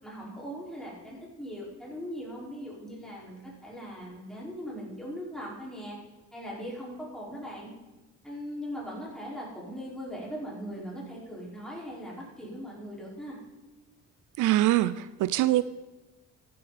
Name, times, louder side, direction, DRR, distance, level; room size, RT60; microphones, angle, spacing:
voice 1, 0.0-6.0 6.3-7.7 8.2-13.4, equal, ahead, -6 dB, 5.2 m, -40 dB
voice 2, 14.4-15.6, right 15 dB, 80° right, 16 dB, 0.5 m, -23 dB
14.5 x 11.0 x 4.3 m, 1.1 s
cardioid pair, 90°, 30 cm